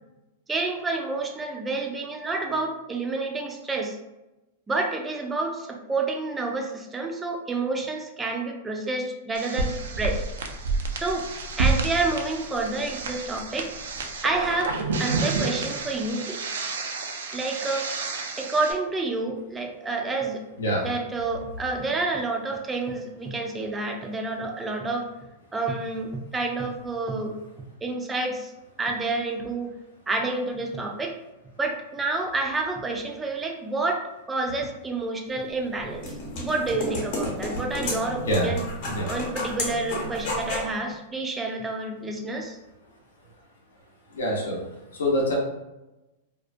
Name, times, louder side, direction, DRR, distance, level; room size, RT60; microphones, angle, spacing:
voice 1, 0.5-4.0 4.7-10.2 10.9-11.3 11.6-13.7 14.2-16.4 17.3-17.9 18.4-20.4 20.8-25.1 25.5-27.3 27.8-28.5 28.8-29.7 30.1-31.2 31.6-38.6 39.1-42.6, right 3 dB, 15° right, 2 dB, 0.4 m, -29 dB
sound 1, 9.3-18.7, right 3 dB, 85° right, 0.3 m, -29 dB
sound 2, 35.5-40.7, left 1 dB, 55° left, 0.9 m, -32 dB
voice 2, 38.1-38.5 38.8-39.1 44.1-44.6 44.9-45.4, equal, 90° left, -3 dB, 0.7 m, -25 dB
2.4 x 2.1 x 2.5 m, 0.98 s
hypercardioid pair, 125°, 0 cm